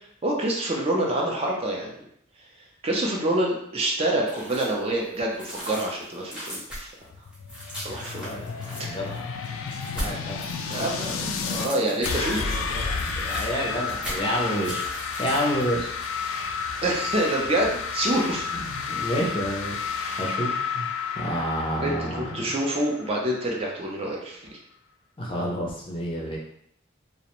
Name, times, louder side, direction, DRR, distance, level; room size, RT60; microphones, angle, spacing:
voice 1, 0.2-2.0 2.8-6.9 7.8-8.3 8.9-9.0 10.7-12.6 16.8-18.5 21.8-24.6, right 1 dB, 30° right, -1 dB, 0.4 m, -27 dB
sound 1, 4.3-4.8 5.1-12.4 12.7-15.6 16.0-16.1, equal, 5° right, 0.8 m, -38 dB
sound 2, 7.0-11.7 12.0-23.6, left 5 dB, 90° left, 0.3 m, -31 dB
voice 2, 8.2-9.2 9.9-10.4 12.3-14.9 15.2-15.9 18.7-20.9 21.1-22.2 25.2-26.4, equal, 25° left, -2 dB, 0.5 m, -29 dB
2.4 x 2.1 x 2.9 m, 0.72 s
head